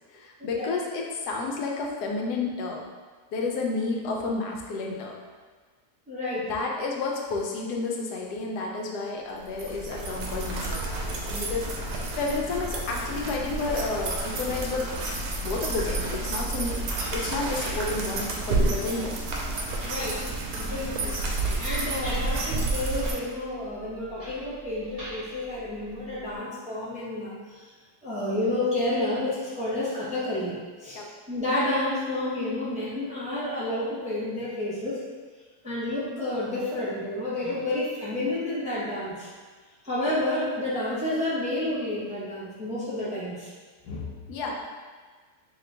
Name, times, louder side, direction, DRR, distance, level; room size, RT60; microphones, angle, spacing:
voice 1, 0.1-2.8 3.3-5.1 6.4-14.9 15.4-16.8 17.1-19.2 31.0-31.1 43.8-44.6, left 3 dB, 90° left, 0 dB, 1.2 m, -31 dB
voice 2, 6.1-6.5 19.8-20.2 20.5-21.2 21.6-27.7 28.0-31.0 31.3-35.0 35.6-39.3 39.8-43.5, left 1 dB, 10° right, -8 dB, 0.5 m, -30 dB
sound 1, 9.5-23.1, right 2 dB, 75° right, 1.1 m, -30 dB
sound 2, 16.7-26.4, equal, 25° right, 1.3 m, -43 dB
3.9 x 3.0 x 3.3 m, 1.4 s
omnidirectional pair, 1.6 m